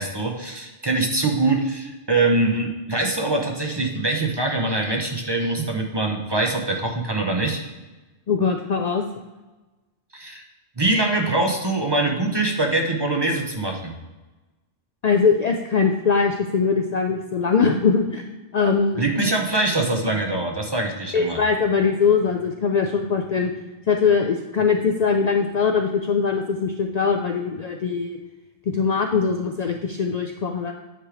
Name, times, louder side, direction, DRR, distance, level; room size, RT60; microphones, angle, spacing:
voice 1, 0.0-7.6 10.1-10.4 10.8-13.9 19.0-21.4, right 2 dB, 25° right, 1 dB, 0.6 m, -23 dB
voice 2, 8.3-9.0 15.0-18.3 18.5-19.0 21.1-23.5 23.9-28.2 28.7-30.7, left 5 dB, 85° left, 3 dB, 0.3 m, -21 dB
9.0 x 3.3 x 4.8 m, 1.2 s
omnidirectional pair, 1.2 m